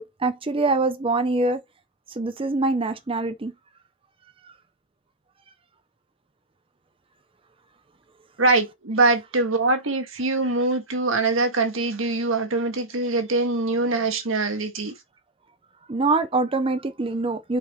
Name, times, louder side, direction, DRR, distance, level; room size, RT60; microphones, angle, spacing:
voice 1, 0.0-1.6 2.1-3.5 15.9-17.6, right 3 dB, 25° right, 0.6 m, -24 dB
voice 2, 8.4-14.9, right 3 dB, 85° right, 1.7 m, -23 dB
7.6 x 5.0 x 3.1 m
head